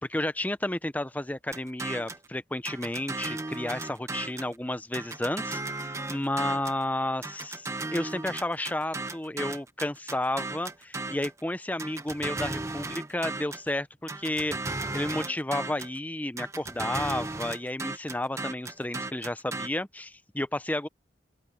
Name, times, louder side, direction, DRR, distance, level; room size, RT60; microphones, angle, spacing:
voice 1, 0.0-20.9, left 1 dB, 10° left, 0.6 m, -32 dB
sound 1, 1.5-2.3 2.7-4.5 4.9-6.8 7.2-11.4 11.8-13.7 14.1-16.0 16.4-19.7, right 3 dB, 15° right, 1.1 m, -35 dB
open air
head